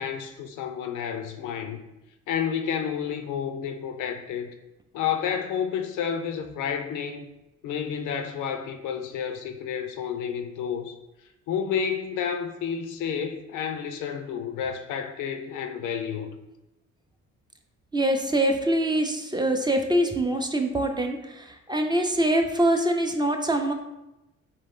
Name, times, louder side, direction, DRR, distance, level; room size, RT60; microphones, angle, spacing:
voice 1, 0.0-1.8 2.3-4.5 4.9-7.3 7.6-11.0 11.5-16.4, left 7 dB, 85° left, 7 dB, 0.5 m, -30 dB
voice 2, 17.9-23.7, right 1 dB, 15° right, 4 dB, 0.4 m, -24 dB
4.2 x 3.0 x 3.6 m, 0.95 s
cardioid pair, 90°, 30 cm